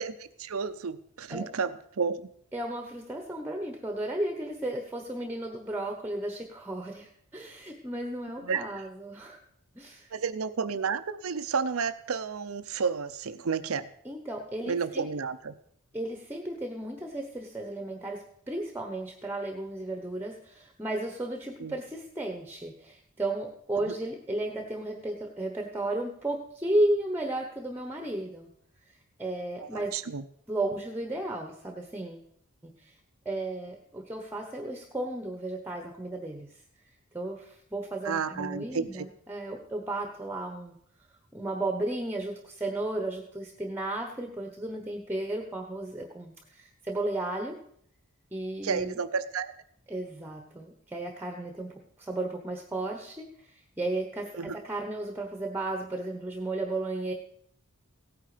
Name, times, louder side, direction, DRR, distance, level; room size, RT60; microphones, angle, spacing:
voice 1, 0.0-1.7 2.0-2.2 8.4-8.8 10.1-13.9 14.7-15.5 21.6-21.8 29.6-30.2 38.0-39.1 48.6-49.5 54.4-54.6, right 5 dB, 75° right, 11 dB, 0.7 m, -31 dB
voice 2, 2.5-9.4 9.7-10.1 14.0-15.1 15.9-28.5 29.2-30.0 30.5-32.2 32.8-32.9 33.2-36.5 37.1-40.8 41.3-47.6 48.3-49.0 49.9-51.7 52.0-57.1, right 1 dB, 10° right, 4 dB, 1.1 m, -34 dB
16.5 x 9.4 x 5.0 m, 0.67 s
head